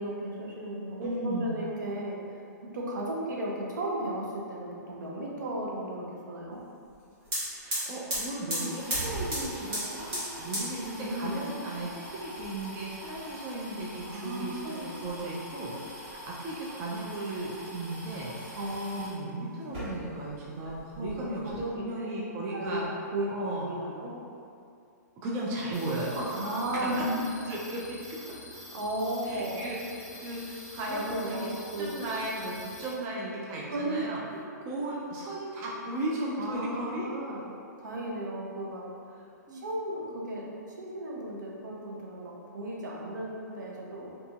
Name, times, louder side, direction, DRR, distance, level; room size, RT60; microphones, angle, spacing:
voice 1, 0.0-2.2 2.7-6.6 11.0-11.4 14.1-15.0 18.6-19.1 21.0-22.1 22.5-22.9 23.1-23.3 23.6-24.1 26.3-27.2 28.7-29.7 30.9-31.4 31.7-32.0 33.5-34.0 34.3-34.4 36.4-38.9 39.5-44.2, right 1 dB, 80° right, -4 dB, 0.6 m, -35 dB
voice 2, 1.0-1.5 7.6-18.7 19.0-21.4 21.8-22.9 23.3-23.7 25.2-26.7 27.0-27.1 27.5-28.0 29.2-31.5 31.8-34.2 34.6-37.1 39.5-39.6, right 1 dB, 25° right, -5 dB, 0.4 m, -36 dB
sound 1, 6.9-7.0 7.2-19.2 19.6-20.4 20.6-21.6, equal, 50° right, 1.4 m, -38 dB
sound 2, 25.7-32.9, left 1 dB, 25° left, 1.1 m, -47 dB
2.7 x 2.6 x 2.3 m, 2.5 s
hypercardioid pair, 135°, 10 cm